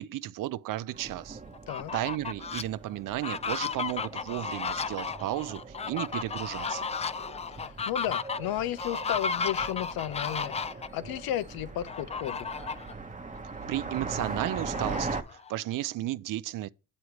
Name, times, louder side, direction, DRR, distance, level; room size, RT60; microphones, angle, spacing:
voice 1, 0.0-1.4 1.9-6.9 13.7-15.2 15.5-16.7, right 15 dB, 60° right, 0.5 m, -33 dB
sound 1, 0.9-15.2, right 3 dB, 20° right, 1.0 m, -41 dB
Fowl, 1.5-2.6 3.1-10.9 11.9-12.9 13.4-13.5 13.8-15.6, left 5 dB, 20° left, 0.3 m, -34 dB
voice 2, 7.6-10.6 10.9-12.5, left 12 dB, 75° left, 0.8 m, -33 dB
7.9 x 3.2 x 5.8 m
supercardioid pair, 75°, 36 cm